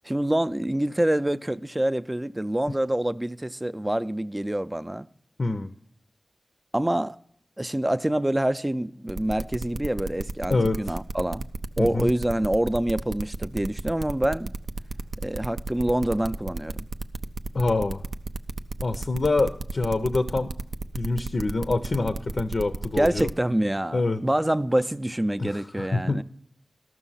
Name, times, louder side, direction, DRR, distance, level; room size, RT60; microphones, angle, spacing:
voice 1, 0.0-5.1 6.7-7.2 7.6-11.4 11.8-14.5 15.2-16.8 23.0-26.2, right 1 dB, 20° right, 0.5 m, -26 dB
voice 2, 5.4-5.7 10.5-10.9 11.8-12.1 17.5-18.0 18.8-20.5 20.9-23.3 23.9-24.2 25.4-26.2, left 3 dB, 60° left, 0.6 m, -26 dB
sound 1, 9.1-23.3, right 3 dB, 80° right, 0.5 m, -33 dB
13.0 x 6.2 x 5.6 m
cardioid pair, 40°, 0 cm